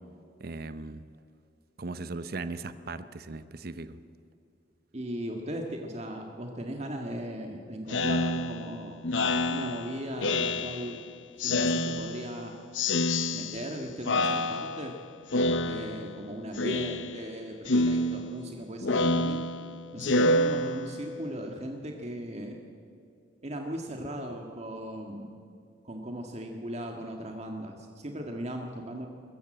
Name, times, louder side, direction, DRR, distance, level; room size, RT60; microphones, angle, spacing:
voice 1, 0.4-1.0 1.8-4.0, right 3 dB, 55° right, 12 dB, 0.8 m, -38 dB
voice 2, 4.9-9.0 9.5-11.0 11.4-12.6 13.3-14.9 15.6-19.5 19.9-22.6 23.4-25.3 25.8-29.1, right 1 dB, 35° right, 2 dB, 1.7 m, -37 dB
Speech synthesizer, 7.9-11.0 11.4-12.4 12.8-13.8 14.1-15.0 15.3-16.2 16.6-17.4 17.7-21.2, left 2 dB, 90° left, 0.9 m, -28 dB
22.5 x 14.5 x 8.7 m, 2.5 s
head